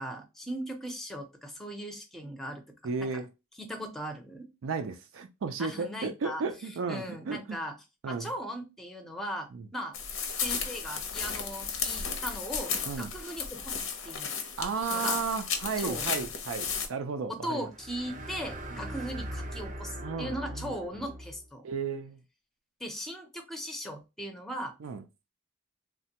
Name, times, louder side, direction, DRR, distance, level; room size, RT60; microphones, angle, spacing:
voice 1, 0.0-2.6 3.0-3.2 3.6-4.5 5.6-6.4 6.9-7.7 8.0-10.0 10.4-14.4 14.9-15.2 15.8-16.0 17.3-21.7 22.8-24.7, equal, ahead, 0.5 m, -38 dB
voice 2, 2.8-3.3 4.6-7.6 8.0-8.3 9.5-9.7 12.9-13.1 14.6-17.7 18.8-18.9 20.0-20.7 21.6-22.2 24.8-25.0, right 5 dB, 90° right, 0.4 m, -34 dB
sound 1, 9.9-16.9, left 6 dB, 85° left, 0.7 m, -34 dB
sound 2, 17.7-21.4, equal, 40° right, 0.6 m, -40 dB
3.2 x 2.2 x 2.8 m
head